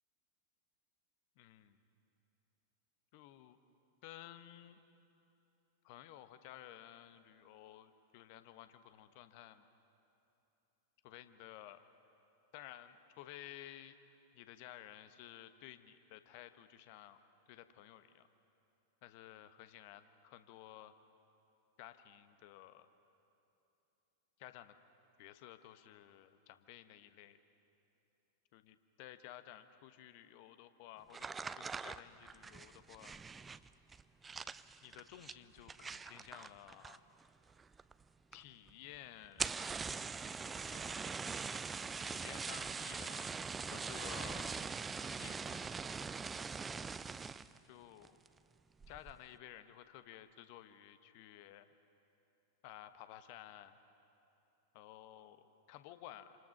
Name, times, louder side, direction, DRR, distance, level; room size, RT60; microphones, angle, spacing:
voice 1, 1.4-1.8 3.1-3.6 4.0-4.8 5.8-9.7 11.0-11.8 12.5-14.0 14.3-17.2 17.5-18.3 19.0-20.9 21.8-22.9 24.4-24.8 25.2-27.4 28.5-31.3 31.6-33.2 34.8-37.0 38.3-39.5 40.6-41.0 42.0-43.3 43.6-44.7 45.0-45.7 47.6-48.2 48.9-51.7 52.6-53.8 54.7-56.4, left 13 dB, 45° left, 10 dB, 1.3 m, -54 dB
sound 1, 31.1-37.2 37.5-38.0 38.3-38.4 38.7-38.8 39.2-47.6 48.0-48.4 48.8-49.2, right 5 dB, 15° right, 0.5 m, -42 dB
28.0 x 27.0 x 6.0 m, 2.9 s
figure-of-eight pair, 90°, 0 cm